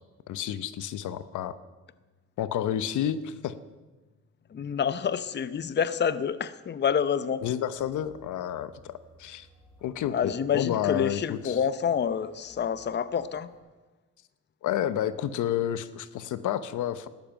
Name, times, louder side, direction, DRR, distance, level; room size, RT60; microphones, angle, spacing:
voice 1, 0.3-1.6 2.4-3.6 7.4-9.5 9.8-11.6 14.6-17.1, left 10 dB, 80° left, 13 dB, 0.9 m, -30 dB
voice 2, 4.5-7.4 10.1-13.5, left 7 dB, 35° left, 14 dB, 0.7 m, -28 dB
sound 1, 7.4-13.6, right 1 dB, 5° right, 7.3 m, -59 dB
13.0 x 12.0 x 9.0 m, 1.2 s
cardioid pair, 90°, 30 cm